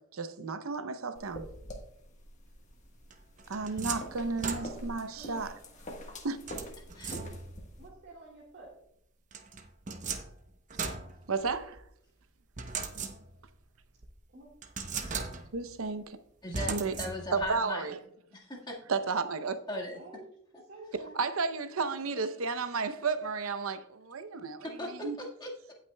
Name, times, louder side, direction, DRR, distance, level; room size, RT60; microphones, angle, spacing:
voice 1, 0.0-1.5 3.5-5.6 6.2-6.4 11.3-11.8 15.5-16.2 16.7-16.9 17.3-18.0 18.9-19.6 21.1-25.2, right 4 dB, 80° right, 0.7 m, -33 dB
sound 1, 1.2-7.9, equal, 35° left, 1.3 m, -46 dB
sound 2, 3.1-5.1 6.5-7.7 9.3-11.8 12.6-13.6 14.0-14.1 14.6-15.7 16.5-17.5, right 5 dB, 35° right, 0.8 m, -38 dB
voice 2, 7.8-8.7 14.3-14.5 19.9-20.2 20.7-21.2, right 2 dB, 55° right, 1.8 m, -49 dB
voice 3, 16.4-16.7 17.0-17.8 18.3-18.8 19.7-20.0 24.6-25.7, left 1 dB, 20° left, 1.7 m, -38 dB
17.0 x 5.9 x 2.2 m
head